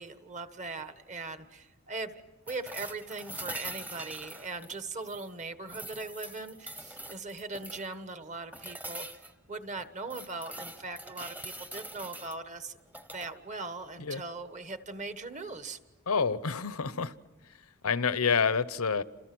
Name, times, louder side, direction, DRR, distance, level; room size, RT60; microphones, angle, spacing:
voice 1, 0.0-12.8 13.1-15.8, right 3 dB, 35° right, 9 dB, 1.4 m, -40 dB
sound 1, 2.5-5.3 5.7-7.9 8.5-9.3 9.8-12.4 12.9-13.3 15.3-15.4, right 1 dB, 5° right, 1.0 m, -43 dB
voice 2, 16.1-17.1 17.8-19.0, left 5 dB, 85° left, 15 dB, 0.9 m, -28 dB
30.0 x 27.0 x 6.2 m, 1.2 s
head